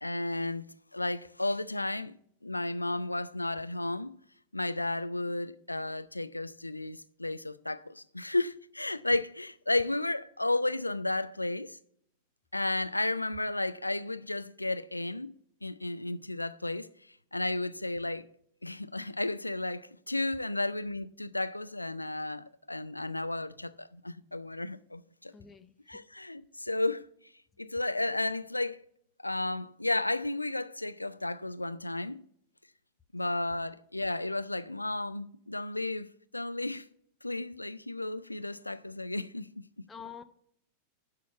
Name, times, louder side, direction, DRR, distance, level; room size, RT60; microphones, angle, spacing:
voice 1, 0.0-2.2 2.4-4.2 4.5-11.8 12.5-15.3 15.6-16.9 17.3-18.3 18.6-25.3 25.9-27.0 27.6-28.8 29.2-32.2 33.1-36.9 37.2-39.5 39.8-39.9, left 2 dB, 85° left, 0.4 m, -33 dB
voice 2, 25.3-26.0 39.9-40.2, left 7 dB, 15° left, 0.6 m, -47 dB
11.0 x 4.6 x 7.0 m
figure-of-eight pair, 90°, 0 cm